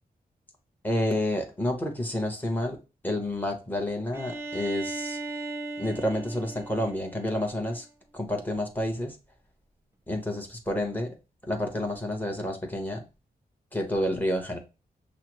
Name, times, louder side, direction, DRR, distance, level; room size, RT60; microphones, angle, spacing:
voice 1, 0.8-2.8 3.0-5.2 5.8-7.8 8.1-9.1 10.1-11.1 11.4-13.0 13.7-14.6, left 1 dB, 10° left, 4 dB, 1.0 m, -29 dB
Bowed string instrument, 4.1-7.9, right 3 dB, 15° right, 0.4 m, -38 dB
5.8 x 2.0 x 3.0 m, 0.29 s
wide cardioid pair, 115°, 16 cm